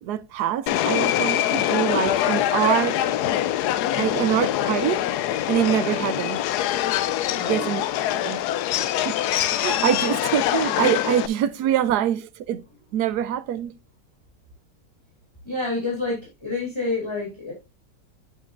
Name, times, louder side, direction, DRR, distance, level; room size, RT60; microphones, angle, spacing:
voice 1, 0.0-3.0 4.0-5.0 5.5-6.4 7.5-7.8 8.2-8.4 9.0-9.2 9.5-12.6 12.9-13.7, right 10 dB, 75° right, 1.2 m, -24 dB
Subway metro underground, 0.7-11.3, left 12 dB, 75° left, 1.1 m, -24 dB
voice 2, 7.3-7.8 15.4-17.5, left 2 dB, 15° left, 2.7 m, -28 dB
8.6 x 8.2 x 2.5 m
omnidirectional pair, 1.8 m